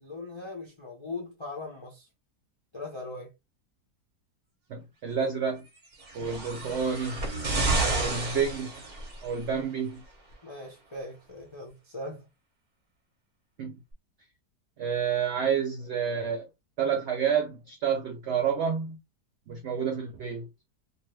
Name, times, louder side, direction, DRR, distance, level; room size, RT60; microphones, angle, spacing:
voice 1, 0.0-2.1 2.7-3.3 10.4-12.3, left 2 dB, 45° left, 0.3 m, -40 dB
voice 2, 4.7-5.7 6.1-7.3 7.9-8.8 9.2-10.0 13.6-13.8 14.8-16.5 16.8-19.0 19.5-20.5, right 7 dB, 80° right, 0.6 m, -29 dB
sound 1, 6.0-9.4 10.3-10.4, right 2 dB, 40° right, 0.7 m, -30 dB
2.6 x 2.5 x 3.0 m
omnidirectional pair, 1.7 m